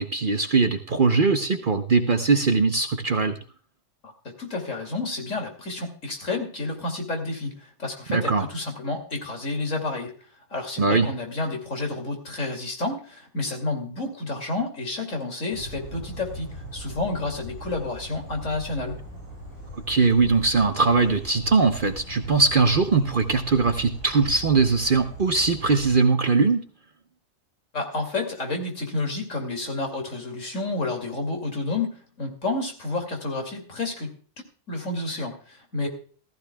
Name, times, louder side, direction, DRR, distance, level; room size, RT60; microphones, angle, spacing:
voice 1, 0.0-3.4 8.1-8.5 10.8-11.1 19.9-26.6, right 4 dB, 45° right, 7 dB, 0.9 m, -21 dB
voice 2, 4.0-10.1 10.5-19.0 27.7-34.1 34.7-35.9, left 2 dB, 65° left, 3 dB, 3.0 m, -30 dB
sound 1, 15.5-26.0, right 1 dB, 85° left, 6.9 m, -40 dB
15.0 x 15.0 x 2.3 m, 0.41 s
omnidirectional pair, 1.4 m